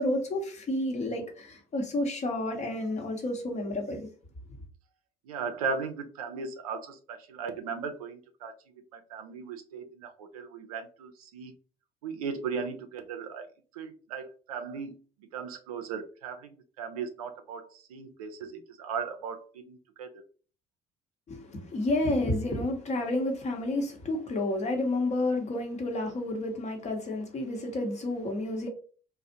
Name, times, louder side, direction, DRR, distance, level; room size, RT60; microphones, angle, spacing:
voice 1, 0.0-4.1 21.3-28.7, left 1 dB, 40° left, 0.8 m, -30 dB
voice 2, 5.3-11.5 12.0-13.5 13.7-14.9 15.3-20.2, right 5 dB, 85° right, 0.4 m, -37 dB
2.4 x 2.0 x 2.6 m
hypercardioid pair, 60°, 18 cm